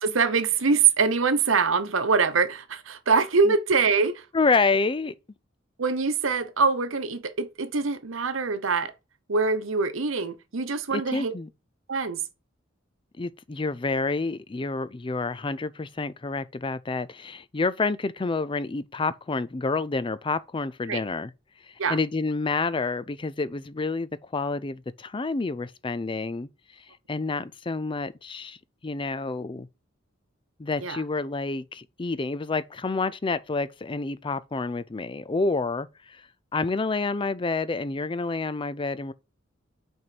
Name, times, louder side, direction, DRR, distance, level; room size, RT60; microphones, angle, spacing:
voice 1, 0.0-4.2 5.8-8.9 9.3-11.3 11.9-12.2 20.9-21.0 21.8-22.0 30.8-31.0, right 5 dB, 85° right, 0.9 m, -24 dB
voice 2, 4.3-5.1 10.9-11.5 13.2-21.3 21.9-26.5 27.1-28.6 28.8-29.7 30.6-36.2 36.5-39.1, left 3 dB, 25° left, 0.5 m, -28 dB
6.2 x 4.5 x 5.9 m
head